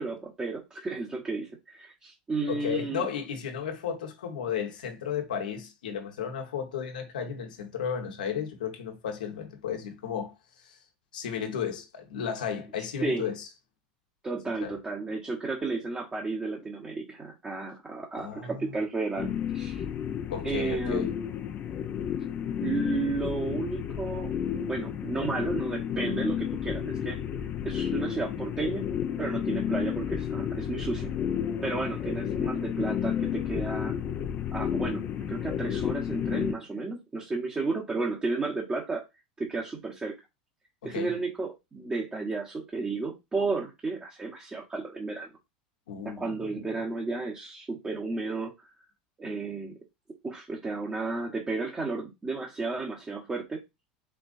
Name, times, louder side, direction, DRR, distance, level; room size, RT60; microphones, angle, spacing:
voice 1, 0.0-3.1 12.8-13.3 14.2-19.9 20.4-21.1 22.6-27.2 27.6-28.9 29.2-31.1 31.6-34.0 34.5-35.0 35.3-39.0 39.4-40.1 40.8-45.3 46.0-48.5 49.2-49.7 50.2-53.6, right 3 dB, 20° right, 1.2 m, -33 dB
voice 2, 2.5-10.3 10.6-10.7 11.1-13.5 14.6-14.7 18.2-18.8 20.3-21.1 40.8-41.1 45.9-46.6, left 7 dB, 85° left, 1.3 m, -34 dB
sound 1, 19.2-36.5, left 9 dB, 40° left, 0.6 m, -31 dB
4.5 x 3.6 x 2.6 m
hypercardioid pair, 95°, 4 cm